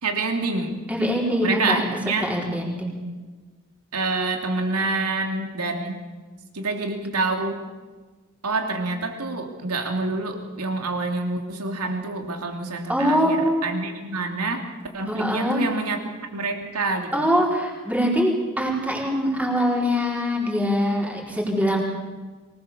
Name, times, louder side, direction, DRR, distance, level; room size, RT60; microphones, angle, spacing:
voice 1, 0.0-0.9 1.4-2.3 3.9-6.0 6.5-7.6 8.4-14.7 14.9-16.0 16.3-17.3, right 3 dB, 85° right, 4 dB, 2.8 m, -27 dB
voice 2, 0.9-1.8 2.2-3.0 12.9-13.7 15.0-15.7 17.1-21.8, equal, 5° right, -2 dB, 4.6 m, -23 dB
23.5 x 19.5 x 7.0 m, 1.3 s
head